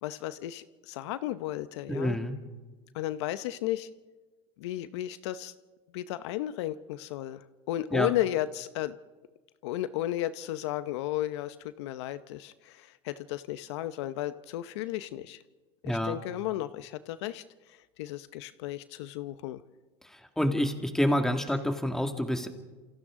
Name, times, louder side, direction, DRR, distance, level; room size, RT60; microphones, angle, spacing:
voice 1, 0.0-2.2 2.9-3.9 4.6-5.5 5.9-9.0 9.6-15.4 15.8-17.4 17.7-19.6, left 14 dB, 80° left, 14 dB, 0.7 m, -34 dB
voice 2, 1.9-2.4 7.9-8.1 15.8-16.2 20.1-22.5, equal, 5° left, 5 dB, 2.2 m, -28 dB
28.0 x 28.0 x 3.7 m, 1.3 s
supercardioid pair, 110°, 14 cm